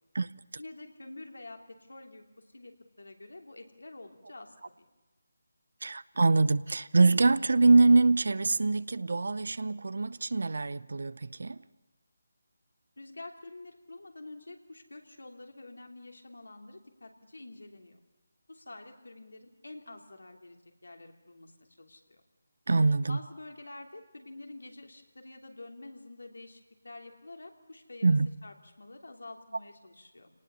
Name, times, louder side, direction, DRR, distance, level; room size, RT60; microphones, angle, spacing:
voice 1, 0.6-2.2 2.5-4.5 13.0-18.0 18.5-20.6 20.8-21.5 21.8-22.2 23.1-28.2 28.4-30.3, left 2 dB, 75° left, 3.1 m, -48 dB
voice 2, 5.8-11.6 22.7-23.2 28.0-28.3, right 3 dB, 65° right, 0.6 m, -24 dB
27.5 x 19.0 x 7.0 m
figure-of-eight pair, 155°, 0 cm